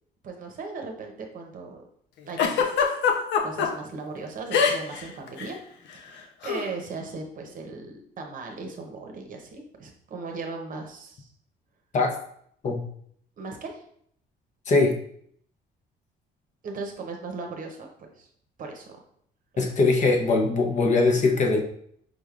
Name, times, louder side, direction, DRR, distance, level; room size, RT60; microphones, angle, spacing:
voice 1, 0.2-1.8 2.3-2.7 3.4-5.6 5.9-11.3 13.4-13.8 16.6-18.3 18.6-18.9, right 3 dB, 45° right, 3 dB, 0.8 m, -37 dB
Giggle, 2.4-3.7 4.5-5.0 5.3-5.5 6.4-6.7, left 6 dB, 75° left, 0.7 m, -22 dB
voice 2, 14.7-15.0 19.6-21.6, left 3 dB, 40° left, 2 dB, 0.7 m, -21 dB
5.0 x 3.4 x 2.4 m, 0.65 s
cardioid pair, 125°, 19 cm